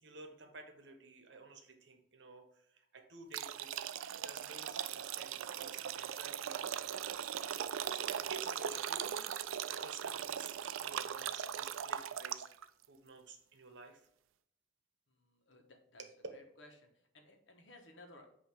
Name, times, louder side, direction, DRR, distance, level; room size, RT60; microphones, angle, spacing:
voice 1, 0.0-3.7 4.2-7.2 7.9-9.3 9.6-10.5 10.8-12.5 12.9-14.0, right 3 dB, 60° right, 5 dB, 1.1 m, -53 dB
sound 1, 3.3-12.6, right 9 dB, 85° right, 0.4 m, -39 dB
voice 2, 15.1-16.1 16.3-18.3, left 2 dB, 65° left, 4 dB, 1.2 m, -59 dB
8.3 x 2.8 x 5.0 m, 0.74 s
head